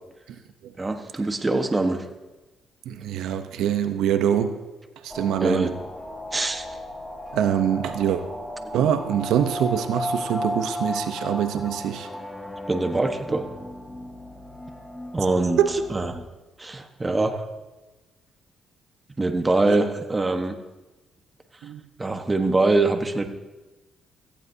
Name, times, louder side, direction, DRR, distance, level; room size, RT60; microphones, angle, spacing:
voice 1, 0.8-2.0 5.4-5.7 6.3-6.6 12.7-13.4 15.1-15.6 15.9-16.2 16.6-17.4 19.2-20.6 22.0-23.3, right 2 dB, 20° right, 6 dB, 1.2 m, -23 dB
voice 2, 2.9-4.6 5.0-5.7 7.3-8.2 8.7-12.1 15.6-15.7 19.7-19.8 21.6-21.8, right 9 dB, 85° right, 9 dB, 0.7 m, -24 dB
sound 1, 5.1-16.2, left 1 dB, 5° left, 1.8 m, -35 dB
17.0 x 14.5 x 2.8 m, 1.1 s
cardioid pair, 90°, 0 cm